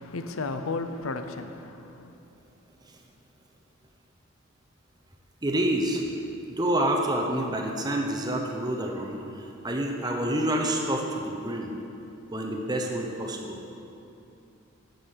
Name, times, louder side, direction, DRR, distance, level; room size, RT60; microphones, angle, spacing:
voice 1, 0.0-2.1, left 3 dB, 80° left, 0.7 m, -34 dB
voice 2, 5.4-6.1 6.5-11.7 12.3-13.6, right 1 dB, 20° right, 0.9 m, -28 dB
9.8 x 7.9 x 6.7 m
head